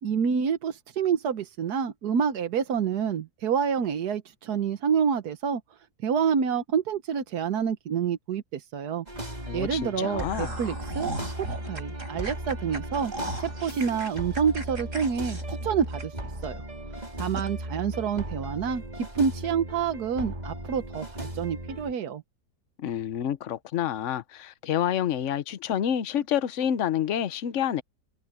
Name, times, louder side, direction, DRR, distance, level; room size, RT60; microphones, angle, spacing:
voice 1, 0.0-5.6 6.0-9.0 9.5-13.1 13.4-16.6 16.9-22.2, right 7 dB, 85° right, 1.6 m, -28 dB
sound 1, 9.1-21.9, right 1 dB, 25° right, 5.1 m, -37 dB
voice 2, 9.5-10.6 22.8-27.8, left 10 dB, 55° left, 1.1 m, -28 dB
sound 2, 10.2-16.4 16.8-16.9 17.4-17.5, right 2 dB, 55° right, 7.2 m, -37 dB
omnidirectional pair, 1.6 m